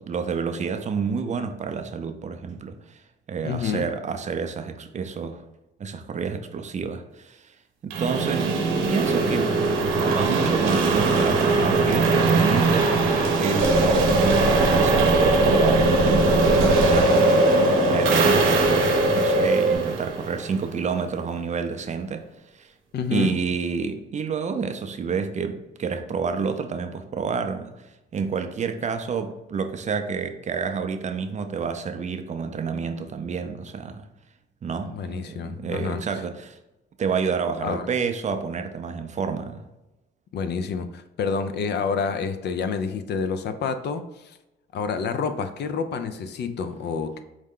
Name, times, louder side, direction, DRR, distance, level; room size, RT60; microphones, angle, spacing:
voice 1, 0.0-3.0 3.3-5.4 5.8-7.5 7.8-9.7 10.0-12.9 13.4-17.6 17.9-22.3 22.5-22.7 23.1-34.1 34.6-36.6 37.0-39.6, right 5 dB, 35° right, 0.4 m, -29 dB
voice 2, 3.4-3.9 22.9-23.4 34.8-36.0 37.6-37.9 40.3-44.3 44.7-47.2, left 5 dB, 60° left, 0.4 m, -28 dB
sound 1, 7.9-20.8, right 4 dB, 85° right, 0.7 m, -22 dB
sound 2, 13.6-19.7, equal, 60° right, 0.9 m, -21 dB
4.7 x 2.2 x 3.6 m
cardioid pair, 90°, 20 cm